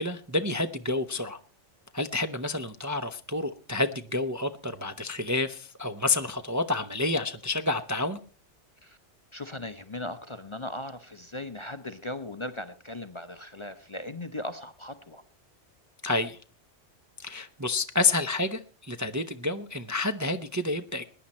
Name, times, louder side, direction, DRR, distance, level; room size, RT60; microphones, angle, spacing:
voice 1, 0.0-1.4 1.9-8.2 16.0-16.4 17.2-21.1, left 2 dB, 20° right, 7 dB, 0.6 m, -29 dB
voice 2, 9.3-15.2, left 1 dB, 30° left, 10 dB, 0.7 m, -38 dB
21.0 x 10.5 x 4.3 m, 0.37 s
omnidirectional pair, 1.3 m